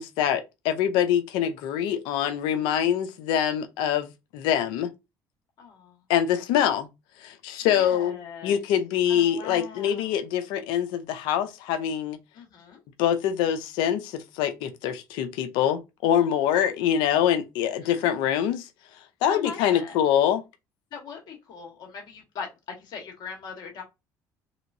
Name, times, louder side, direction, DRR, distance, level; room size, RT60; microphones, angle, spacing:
voice 1, 0.0-4.1 4.3-4.9 6.1-6.9 7.2-8.2 8.4-12.2 13.0-18.7 19.2-20.4, left 10 dB, 80° left, 0.5 m, -24 dB
voice 2, 5.6-6.0 7.7-8.6 9.1-10.0 12.3-12.8 17.8-18.0 19.3-20.0 20.9-23.8, left 6 dB, 60° left, 1.5 m, -40 dB
3.3 x 2.9 x 2.7 m
supercardioid pair, 85°, 8 cm